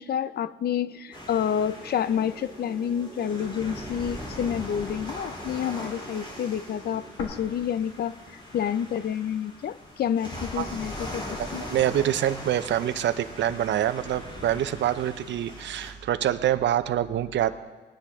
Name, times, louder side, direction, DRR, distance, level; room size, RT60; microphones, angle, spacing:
voice 1, 0.0-11.7, left 9 dB, 55° left, 16 dB, 0.5 m, -29 dB
sound 1, 1.1-15.9, left 1 dB, 25° left, 3.5 m, -40 dB
sound 2, 1.1-7.1, right 4 dB, 15° right, 2.1 m, -47 dB
sound 3, 7.2-9.1 9.4-9.5 10.2-11.2, left 4 dB, 80° left, 1.8 m, -42 dB
voice 2, 11.3-17.6, right 11 dB, 65° right, 13 dB, 0.7 m, -26 dB
20.0 x 10.0 x 3.6 m, 1.3 s
cardioid pair, 90°, 20 cm